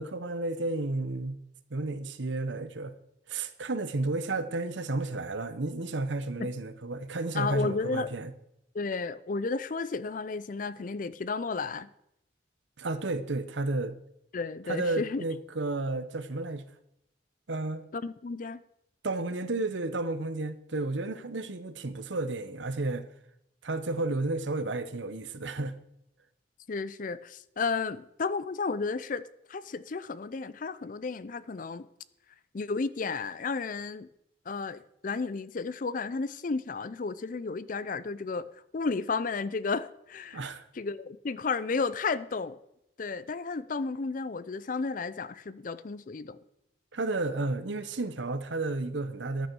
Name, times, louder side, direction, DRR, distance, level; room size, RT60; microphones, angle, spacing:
voice 1, 0.0-1.4 1.7-2.9 3.3-8.3 12.8-14.0 14.6-16.6 17.5-17.9 19.0-23.1 23.6-25.7 40.3-40.7 46.9-49.5, right 2 dB, 80° right, 1.0 m, -32 dB
voice 2, 7.3-8.1 8.7-11.9 14.3-15.2 17.9-18.6 26.7-31.9 32.5-34.1 34.5-38.5 38.7-40.4 40.7-42.6 43.0-46.4, left 4 dB, 45° left, 0.5 m, -33 dB
14.0 x 9.2 x 4.7 m
head